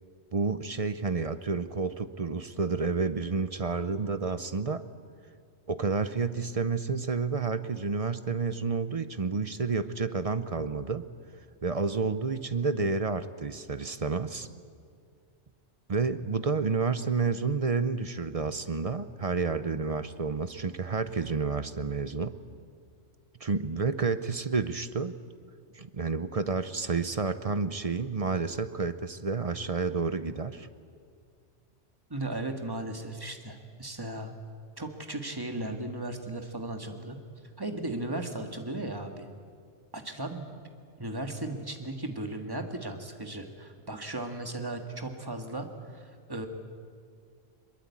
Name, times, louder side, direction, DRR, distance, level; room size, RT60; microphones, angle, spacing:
voice 1, 0.3-4.8 5.7-11.0 11.6-14.5 15.9-22.3 23.4-25.1 25.7-30.7, right 4 dB, 35° right, 12 dB, 0.6 m, -30 dB
voice 2, 32.1-34.3 34.8-37.2 37.6-39.3 39.9-40.5 41.0-46.5, right 2 dB, 20° right, 5 dB, 1.8 m, -36 dB
22.0 x 22.0 x 8.5 m, 2.1 s
omnidirectional pair, 1.3 m